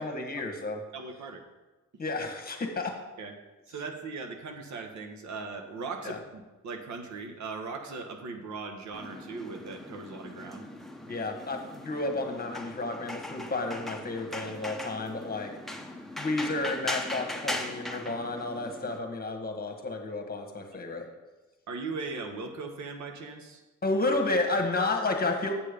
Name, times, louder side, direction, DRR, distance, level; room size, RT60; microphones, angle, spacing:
voice 1, 0.0-0.8 2.0-3.0 6.0-6.2 11.1-15.5 16.2-21.1 23.8-25.5, left 2 dB, 30° left, 4 dB, 1.4 m, -31 dB
voice 2, 0.9-1.4 3.2-3.3 3.7-10.7 21.7-23.6, right 4 dB, 70° right, 5 dB, 1.2 m, -39 dB
sound 1, 8.9-19.0, left 1 dB, ahead, 0.8 m, -39 dB
7.4 x 6.7 x 5.1 m, 1.1 s
cardioid pair, 90°, 30 cm